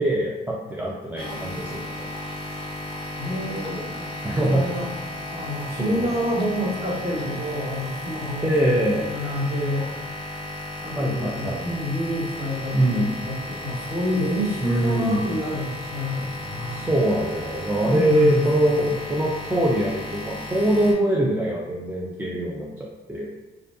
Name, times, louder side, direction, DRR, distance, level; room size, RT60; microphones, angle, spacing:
voice 1, 0.0-2.1 4.2-4.6 5.8-6.1 8.4-9.1 11.0-11.6 12.7-13.1 14.6-15.2 16.7-23.3, right 1 dB, 10° right, -4 dB, 0.3 m, -23 dB
sound 1, 1.2-20.9, left 1 dB, 25° left, 0.7 m, -35 dB
voice 2, 3.2-4.9 5.3-9.9 10.8-16.9 17.9-18.7, left 1 dB, 30° right, -7 dB, 1.2 m, -28 dB
2.6 x 2.4 x 2.3 m, 1.2 s
cardioid pair, 90°, 20 cm